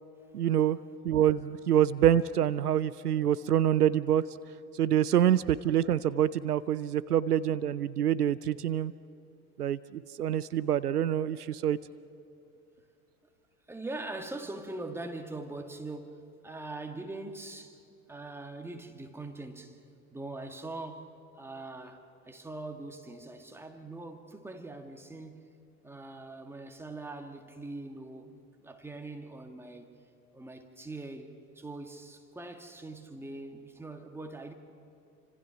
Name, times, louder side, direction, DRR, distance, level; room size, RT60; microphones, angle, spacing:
voice 1, 0.3-0.8 1.0-4.2 4.7-8.9 9.6-11.8, right 10 dB, 75° right, 0.7 m, -26 dB
voice 2, 13.7-17.8 18.1-19.8 20.1-25.5 25.8-29.9 30.3-34.5, right 2 dB, 5° right, 1.8 m, -42 dB
29.0 x 25.5 x 5.9 m
figure-of-eight pair, 80°, 46 cm